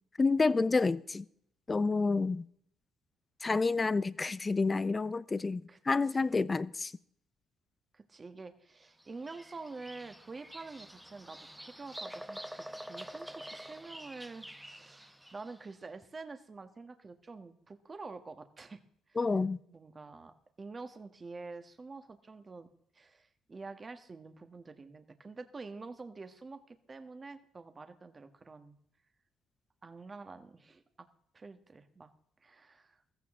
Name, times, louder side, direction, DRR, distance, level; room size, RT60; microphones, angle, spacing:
voice 1, 0.2-1.3 1.7-2.5 3.4-6.9 19.2-19.6, left 3 dB, 25° left, 0.6 m, -29 dB
voice 2, 5.7-6.5 7.9-18.8 19.1-19.2 19.7-22.7 22.9-28.8 29.8-31.1 31.3-32.1 32.4-33.0, right 3 dB, 30° right, 1.4 m, -48 dB
Bird vocalization bird call bird song, 9.0-15.6, equal, 5° right, 1.0 m, -47 dB
15.0 x 14.0 x 3.7 m
cardioid pair, 95°, 0 cm